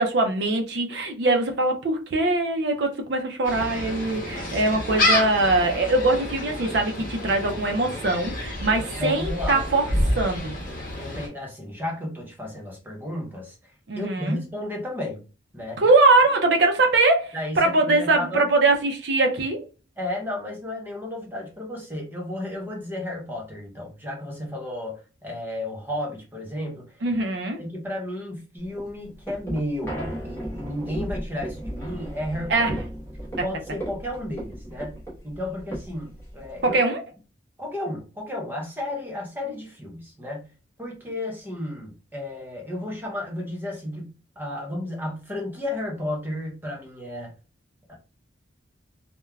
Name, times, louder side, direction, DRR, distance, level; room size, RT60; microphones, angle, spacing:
voice 1, 0.0-9.8 10.2-10.6 13.9-14.4 15.8-19.6 27.0-27.6 32.5-32.8 36.6-37.0, right 2 dB, 60° right, 0.5 m, -22 dB
Gull seagull, 3.4-11.3, left 1 dB, 45° left, 0.9 m, -28 dB
voice 2, 9.0-9.6 11.0-15.2 15.5-15.9 17.3-18.5 20.0-27.0 27.6-32.7 33.4-35.0 35.2-36.8 37.6-40.5 40.8-47.3 47.9-48.0, left 1 dB, 10° right, 0.6 m, -33 dB
sound 1, 28.6-36.8, equal, 15° left, 1.0 m, -35 dB
3.1 x 2.1 x 2.3 m
head